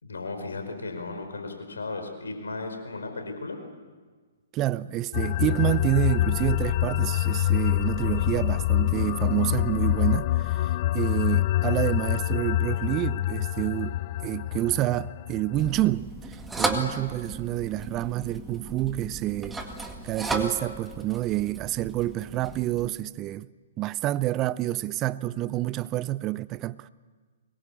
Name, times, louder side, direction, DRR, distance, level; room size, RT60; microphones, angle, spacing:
voice 1, 0.0-3.6, left 3 dB, 80° left, 4.6 m, -35 dB
voice 2, 4.5-14.0 14.2-16.1 16.6-19.6 20.0-23.5 23.8-26.9, right 15 dB, 30° right, 0.7 m, -28 dB
sound 1, 5.1-15.9, left 15 dB, 45° left, 0.7 m, -26 dB
sound 2, 15.5-22.9, right 2 dB, 5° right, 2.1 m, -35 dB
24.0 x 21.5 x 8.4 m
figure-of-eight pair, 125°, 0 cm